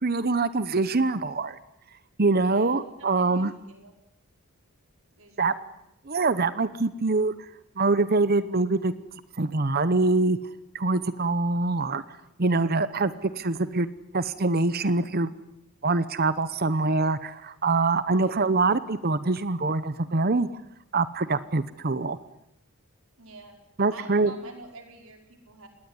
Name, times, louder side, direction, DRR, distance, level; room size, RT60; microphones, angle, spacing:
voice 1, 0.0-1.6 2.2-3.5 5.4-5.5 6.1-7.3 7.8-8.9 9.4-10.4 10.7-12.0 12.4-13.9 14.1-15.3 15.8-20.5 20.9-22.2 23.8-24.3, right 3 dB, 45° right, 14 dB, 0.9 m, -24 dB
voice 2, 2.4-4.0 5.1-5.7 18.1-18.4 23.2-23.6 23.9-25.7, right 2 dB, 65° right, 4 dB, 5.0 m, -47 dB
26.5 x 20.0 x 9.7 m, 0.81 s
head